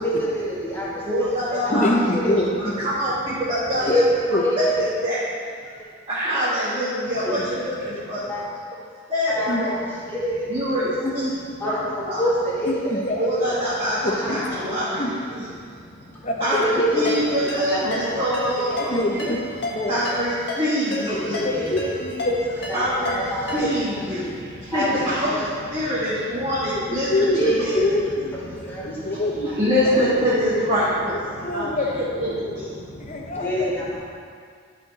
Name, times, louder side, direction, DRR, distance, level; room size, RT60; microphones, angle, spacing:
voice 1, 0.0-1.1 1.5-2.0 2.2-2.3 2.7-2.8 3.8-4.0 4.4-4.7 7.2-7.3 8.3-8.4 9.4-9.6 10.1-10.9 11.6-13.0 13.3-13.7 14.0-14.9 15.7-16.3 16.6-17.0 17.3-18.4 21.1-22.4 22.7-23.6 23.9-24.9 27.4-27.8 28.5-29.2 31.3-31.7 32.7-34.0, equal, 10° left, -7 dB, 1.6 m, -28 dB
voice 2, 1.0-1.9 2.6-4.0 4.6-5.3 6.1-8.2 9.1-9.7 10.5-10.9 11.1-11.3 11.6-11.7 12.0-12.3 13.2-15.0 15.3-15.5 16.4-18.9 19.9-21.7 22.7-27.8 29.6-31.2 31.5-31.7 31.9-32.7, equal, 25° right, -11 dB, 1.6 m, -24 dB
voice 3, 1.7-2.8 4.3-4.5 9.5-9.6 12.6-13.3 14.0-14.4 15.0-15.1 16.2-16.6 16.9-17.1 18.9-19.4 19.7-20.0 21.4-22.3 24.8-25.0 27.1-27.4 27.7-29.5 31.4-32.1 33.1-33.7, left 2 dB, 35° left, 1 dB, 0.8 m, -25 dB
Ringtone, 17.1-23.9, left 2 dB, 55° left, 1.4 m, -32 dB
12.0 x 4.6 x 4.1 m, 2.1 s
head